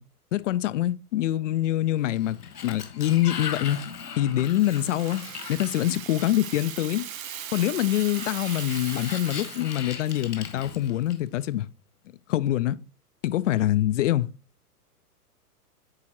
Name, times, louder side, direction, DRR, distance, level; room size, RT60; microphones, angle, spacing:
voice 1, 0.3-3.8 4.2-5.2 5.5-7.0 7.5-11.7 12.3-12.8 13.2-14.3, left 13 dB, 55° left, 0.5 m, -25 dB
Sliding door, 2.0-6.6 7.7-11.4, left 7 dB, 75° left, 1.5 m, -39 dB
Rattle (instrument), 4.4-10.4, right 10 dB, 55° right, 0.7 m, -39 dB
8.7 x 3.8 x 2.9 m
figure-of-eight pair, 110°, 47 cm